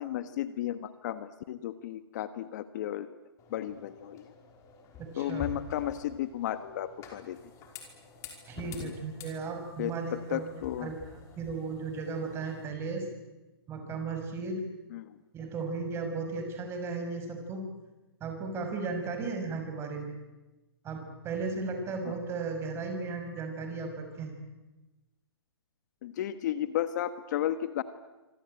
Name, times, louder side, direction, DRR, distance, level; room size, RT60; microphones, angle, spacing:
voice 1, 0.0-3.1 3.5-4.2 5.2-7.4 8.8-8.9 9.8-10.9 14.9-15.2 22.0-22.1 26.0-27.8, left 12 dB, 45° left, 12 dB, 1.4 m, -34 dB
sound 1, 3.4-12.7, left 5 dB, 25° left, 5.3 m, -48 dB
voice 2, 5.0-5.5 8.5-10.4 10.8-13.1 13.7-14.6 15.3-17.7 18.2-20.2 20.8-24.4, right 4 dB, 20° right, 5 dB, 6.0 m, -35 dB
26.0 x 25.5 x 9.1 m, 1.1 s
hypercardioid pair, 145°, 14 cm